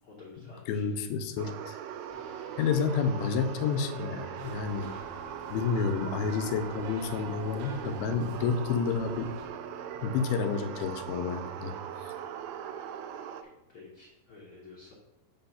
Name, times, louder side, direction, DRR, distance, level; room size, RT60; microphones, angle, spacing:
voice 1, 0.0-1.0 13.4-14.9, left 3 dB, 75° left, -4 dB, 1.2 m, -51 dB
voice 2, 0.7-1.8 2.6-5.0 5.5-9.3 10.0-11.8, left 5 dB, 90° left, 8 dB, 2.6 m, -30 dB
sound 1, 1.4-13.4, right 9 dB, 80° right, 2.1 m, -40 dB
sound 2, 2.1-13.8, left 4 dB, ahead, 0.8 m, -52 dB
sound 3, 4.4-9.5, right 2 dB, 65° right, 2.3 m, -52 dB
7.8 x 4.1 x 5.6 m, 0.93 s
omnidirectional pair, 4.4 m